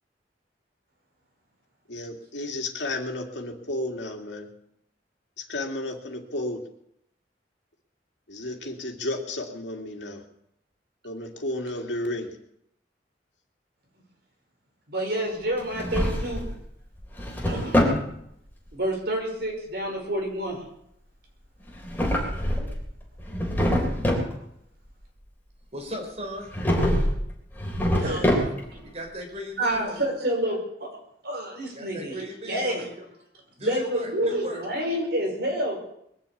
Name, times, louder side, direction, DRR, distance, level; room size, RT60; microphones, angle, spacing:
voice 1, 1.9-4.5 5.5-6.6 8.3-10.2 11.0-12.3, left 1 dB, 90° left, 2 dB, 2.5 m, -32 dB
voice 2, 14.9-16.4 17.4-17.8 18.7-20.6 28.0-28.3 29.6-30.6 31.2-32.8 33.6-35.8, right 1 dB, 60° right, 0 dB, 5.5 m, -28 dB
Drawer open or close, 15.6-16.6 17.0-18.0 21.7-22.8 23.2-24.3 26.5-27.2 27.5-28.8, equal, 10° left, 3.7 m, -24 dB
voice 3, 25.7-26.5 27.9-28.5 28.8-30.2 31.7-32.9 33.6-34.6, equal, 40° right, 2 dB, 4.2 m, -37 dB
21.5 x 7.4 x 8.5 m, 0.75 s
head